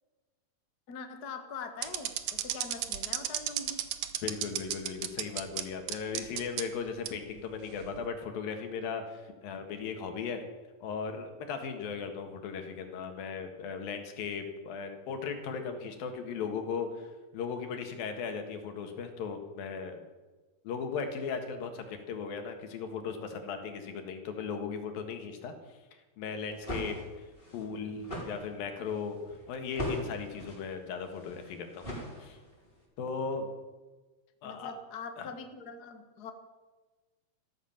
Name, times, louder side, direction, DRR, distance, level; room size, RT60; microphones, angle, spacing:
voice 1, 0.9-3.8 34.4-36.3, left 5 dB, 50° left, 6 dB, 1.1 m, -43 dB
sound 1, 1.8-5.6 5.9-6.6 7.1-7.2 7.8-8.1, right 13 dB, 70° right, 2.2 m, -32 dB
voice 2, 4.2-10.4 10.8-17.1 17.3-20.0 20.7-25.5 26.2-27.3 27.5-29.2 29.5-31.9 32.2-32.4 33.0-33.5 34.4-34.7 35.2-35.3, left 5 dB, 75° left, 6 dB, 3.4 m, -37 dB
sound 2, 26.4-32.7, equal, 15° left, 5.2 m, -41 dB
14.5 x 13.5 x 7.3 m, 1.2 s
omnidirectional pair, 4.2 m